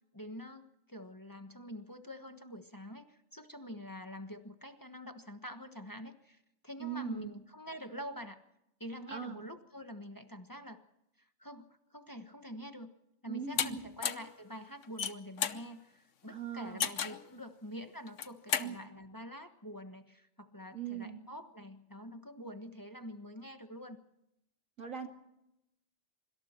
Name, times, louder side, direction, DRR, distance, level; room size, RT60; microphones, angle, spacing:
voice 1, 0.1-8.4 8.8-10.8 11.2-12.9 13.2-24.0, equal, 15° left, 6 dB, 1.3 m, -46 dB
voice 2, 6.8-7.4 9.1-9.4 13.2-13.9 16.3-16.8 18.6-18.8 20.7-21.2 24.8-25.1, right 8 dB, 90° right, 4 dB, 3.0 m, -40 dB
sound 1, 13.6-13.7 14.0-14.3 14.8-15.6 16.8-17.2 18.1-18.7, left 7 dB, 70° left, 1.4 m, -32 dB
25.5 x 25.5 x 4.4 m, 0.85 s
omnidirectional pair, 1.3 m